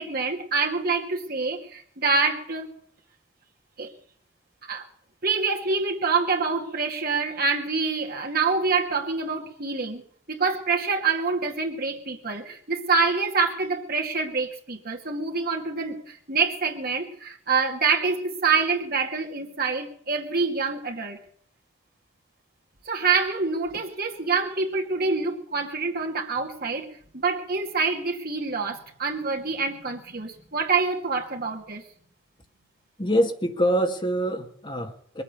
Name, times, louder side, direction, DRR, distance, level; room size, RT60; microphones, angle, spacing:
voice 1, 0.0-2.7 3.8-3.9 4.6-4.9 5.2-10.0 10.3-21.2 22.9-26.9 27.1-31.8, right 4 dB, 50° right, 2 dB, 2.5 m, -26 dB
voice 2, 33.0-35.2, equal, 25° left, 4 dB, 1.9 m, -25 dB
22.5 x 8.5 x 6.9 m, 0.63 s
head